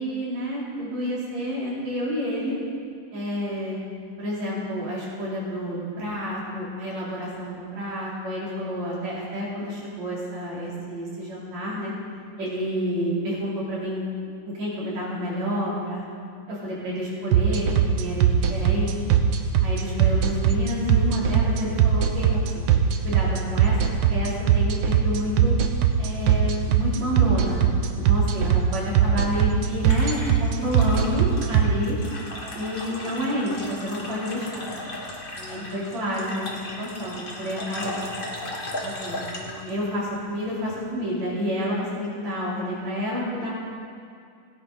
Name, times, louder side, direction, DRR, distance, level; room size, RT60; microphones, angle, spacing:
voice 1, 0.0-2.6 3.1-3.8 4.2-11.9 12.4-14.0 14.4-16.0 16.5-18.9 19.6-22.4 23.0-23.8 24.1-25.5 26.0-27.6 27.9-32.0 32.5-34.7 35.4-36.5 36.8-38.0 38.8-43.5, equal, 65° right, -7 dB, 4.4 m, -29 dB
sound 1, 17.3-31.6, right 11 dB, 85° right, 1.1 m, -19 dB
sound 2, 29.2-40.9, left 1 dB, 30° left, 1.0 m, -37 dB
18.0 x 10.0 x 4.0 m, 2.3 s
omnidirectional pair, 3.4 m